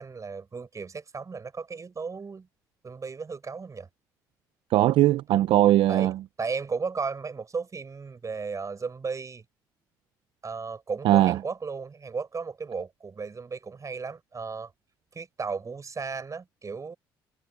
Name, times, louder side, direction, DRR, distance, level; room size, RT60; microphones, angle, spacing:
voice 1, 0.0-2.5 2.8-3.9 5.9-6.1 6.4-9.4 10.4-14.7 15.1-17.0, right 5 dB, 35° right, 6.4 m, -35 dB
voice 2, 4.7-6.2 11.0-11.4, right 14 dB, 70° right, 0.7 m, -20 dB
supercardioid pair, 60°, 9 cm